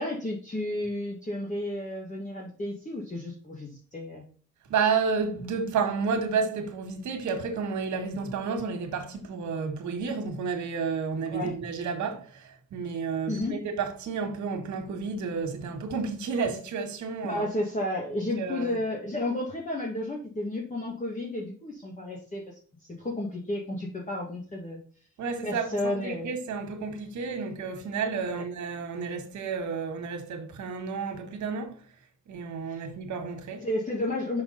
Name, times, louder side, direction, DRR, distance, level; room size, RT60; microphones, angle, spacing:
voice 1, 0.0-4.2 11.3-11.5 13.3-13.5 17.2-22.4 23.0-24.8 25.4-26.3 28.3-28.4 32.7-32.9 33.6-34.4, left 1 dB, 25° left, 2.0 m, -32 dB
voice 2, 4.7-17.5 18.1-18.8 25.2-31.8 32.3-33.7, right 5 dB, 70° right, 1.8 m, -31 dB
5.8 x 5.8 x 4.0 m
cardioid pair, 90°, 30 cm